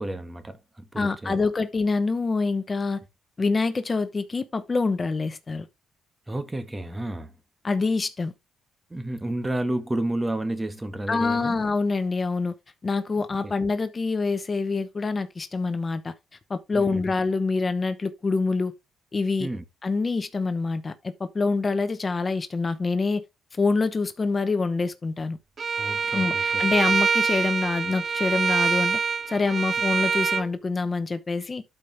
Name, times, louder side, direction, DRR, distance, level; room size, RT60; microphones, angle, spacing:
voice 1, 0.0-1.4 6.3-7.3 8.9-11.6 13.2-13.5 16.7-17.0 19.4-19.6 25.8-26.6, right 1 dB, 15° right, 1.7 m, -31 dB
voice 2, 1.0-3.0 3.4-5.7 7.6-8.3 11.1-12.5 12.8-16.1 16.5-18.7 19.1-19.5 19.8-23.2 23.6-25.4 26.1-29.0 29.3-31.6, left 4 dB, 30° left, 1.0 m, -26 dB
Bowed string instrument, 25.6-30.5, right 5 dB, 40° right, 0.4 m, -25 dB
12.0 x 5.2 x 3.5 m
cardioid pair, 90°, 0 cm